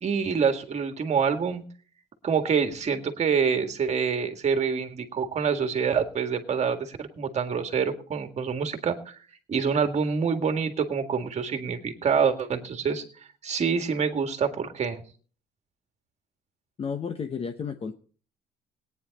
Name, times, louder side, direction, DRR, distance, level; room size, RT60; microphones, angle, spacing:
voice 1, 0.0-1.6 2.2-9.2 9.5-13.0 13.4-15.0, right 6 dB, 40° right, 7 dB, 1.9 m, -26 dB
voice 2, 16.8-17.9, left 6 dB, 35° left, 7 dB, 0.9 m, -32 dB
18.0 x 9.6 x 4.1 m, 0.42 s
cardioid pair, 110°, 17 cm